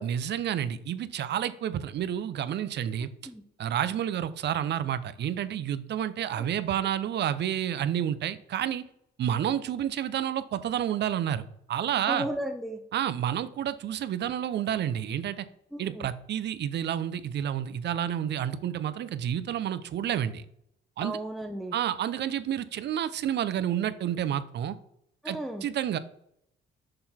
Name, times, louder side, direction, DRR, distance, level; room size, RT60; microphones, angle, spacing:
voice 1, 0.0-3.1 3.6-8.8 9.2-12.3 12.9-15.5 15.8-20.4 21.0-21.2 21.7-24.7 25.3-26.0, right 10 dB, 60° right, 14 dB, 0.5 m, -30 dB
voice 2, 11.9-12.8 16.0-16.1 21.0-21.7 25.2-25.6, right 1 dB, ahead, 3 dB, 0.6 m, -34 dB
6.7 x 3.8 x 4.2 m, 0.75 s
cardioid pair, 90°, 20 cm